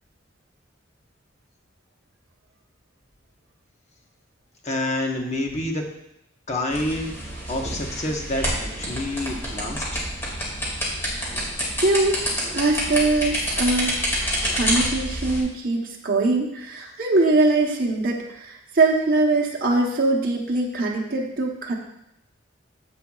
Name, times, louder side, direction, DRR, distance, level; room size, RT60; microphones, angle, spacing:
voice 1, 4.6-5.8 6.5-7.1 7.5-10.0, left 1 dB, 35° left, 2 dB, 1.1 m, -28 dB
sound 1, 6.7-15.4, equal, 15° left, 2.2 m, -28 dB
voice 2, 11.8-12.3 12.5-14.1 14.5-21.7, right 2 dB, 50° right, -2 dB, 1.0 m, -22 dB
10.0 x 7.8 x 2.4 m, 0.81 s
head